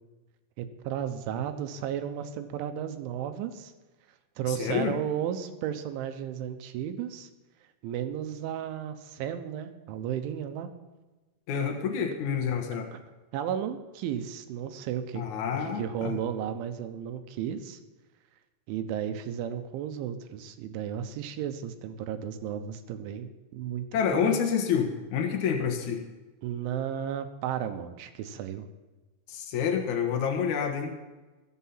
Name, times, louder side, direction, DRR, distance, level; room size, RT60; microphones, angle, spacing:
voice 1, 0.6-3.7 4.4-7.3 7.8-10.7 12.9-13.0 13.3-15.2 15.6-17.8 18.7-23.9 24.1-24.4 26.4-28.7, right 9 dB, 80° right, 8 dB, 3.3 m, -34 dB
voice 2, 4.5-4.9 11.5-12.9 15.1-16.2 23.9-26.0 29.3-30.9, left 7 dB, 85° left, 3 dB, 1.6 m, -28 dB
20.5 x 7.4 x 5.7 m, 1.2 s
omnidirectional pair, 5.6 m